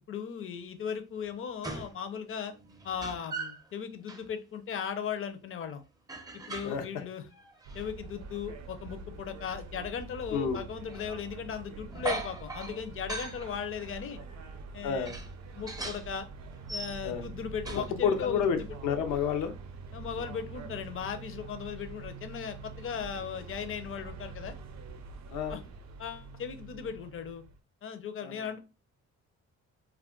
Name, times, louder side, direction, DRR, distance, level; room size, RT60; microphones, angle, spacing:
voice 1, 0.1-2.5 2.8-5.8 6.5-7.2 7.7-14.2 14.7-15.1 15.5-16.3 16.7-18.7 19.9-24.6 25.5-25.6 26.0-27.4 27.8-28.6, left 7 dB, 45° left, 9 dB, 0.5 m, -37 dB
sound 1, 1.2-1.3 1.6-2.0 2.3-3.7 4.1-4.3 6.1-6.9 7.3-7.9 9.3-9.4 10.9-11.1 11.9-13.5 14.2-14.3 15.1-16.1 16.5-17.3 17.6-18.4, right 3 dB, 15° right, 0.4 m, -40 dB
sound 2, 7.6-27.6, right 4 dB, 60° right, 0.5 m, -45 dB
voice 2, 14.8-15.1 17.0-17.2 18.0-19.5 25.3-25.6 28.2-28.3, left 7 dB, 90° left, 6 dB, 0.6 m, -29 dB
2.4 x 2.1 x 3.7 m, 0.32 s
cardioid pair, 90°, 30 cm